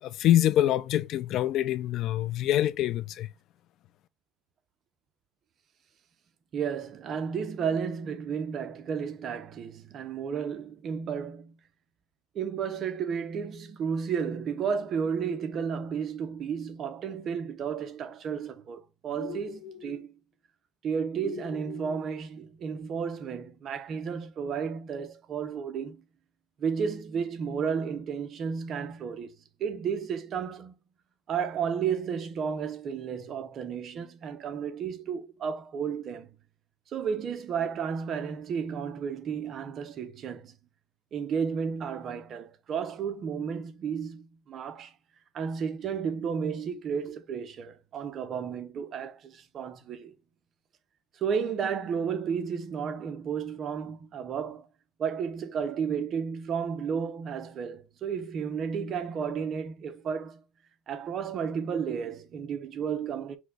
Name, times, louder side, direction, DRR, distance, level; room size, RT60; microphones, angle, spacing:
voice 1, 0.0-3.3, left 12 dB, 55° left, 0.3 m, -25 dB
voice 2, 6.5-11.5 12.3-20.2 20.8-26.0 26.6-29.3 29.6-30.7 31.3-36.3 36.9-40.5 41.1-44.9 45.3-50.1 51.1-54.7 55.0-60.4 60.9-63.4, right 7 dB, 40° right, 0.7 m, -32 dB
sound 1, 19.1-20.1 21.2-22.1, left 7 dB, 30° left, 1.1 m, -42 dB
6.0 x 2.2 x 3.4 m
cardioid pair, 130°, 0 cm